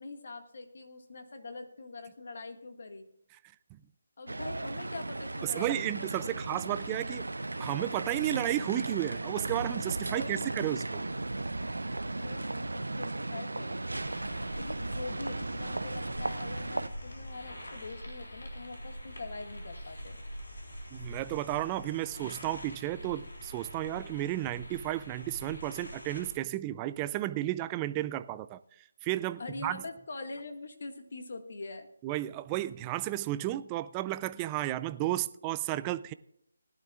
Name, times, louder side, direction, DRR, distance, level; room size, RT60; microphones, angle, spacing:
voice 1, 0.0-3.1 4.2-6.6 10.0-10.5 12.2-13.9 14.6-20.2 29.4-31.9, left 3 dB, 60° left, 1.8 m, -43 dB
sound 1, 4.3-16.9, right 2 dB, 90° right, 0.6 m, -36 dB
voice 2, 5.4-7.3 7.6-11.0 20.9-28.6 29.0-29.8 32.0-36.1, right 15 dB, 20° right, 0.4 m, -33 dB
sound 2, 13.9-26.3, equal, 85° left, 4.0 m, -44 dB
19.5 x 11.5 x 2.4 m
figure-of-eight pair, 160°, 0 cm